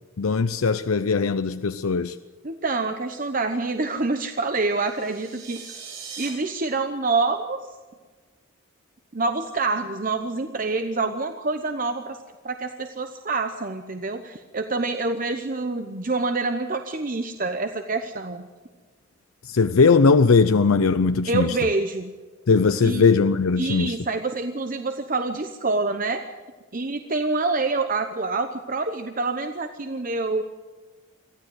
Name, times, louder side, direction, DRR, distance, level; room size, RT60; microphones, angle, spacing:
voice 1, 0.2-2.1 19.5-21.5 22.5-23.9, left 4 dB, 90° left, 0.6 m, -19 dB
voice 2, 2.4-5.6 6.2-7.6 9.1-12.2 12.4-18.5 21.3-22.1 22.8-23.0 23.6-26.2 26.7-30.4, right 3 dB, 40° right, 0.9 m, -26 dB
sound 1, 4.7-6.3, right 6 dB, 65° right, 6.2 m, -40 dB
23.5 x 15.0 x 7.9 m
head